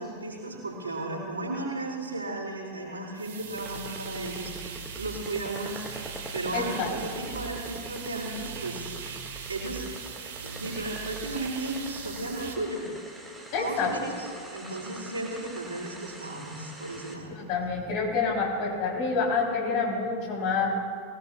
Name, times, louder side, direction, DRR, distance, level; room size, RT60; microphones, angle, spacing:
voice 1, 0.0-8.9 9.5-9.9 10.4-12.8 13.6-17.3, right 2 dB, 75° right, -4 dB, 4.1 m, -35 dB
sound 1, 3.2-12.5, right 6 dB, 55° right, 1.3 m, -40 dB
sound 2, 3.6-17.1, right 1 dB, 5° right, 1.8 m, -44 dB
voice 2, 6.5-6.9 13.5-14.1 17.3-20.7, left 4 dB, 45° left, -1 dB, 3.4 m, -27 dB
22.5 x 18.0 x 2.3 m, 2.3 s
figure-of-eight pair, 90°, 0 cm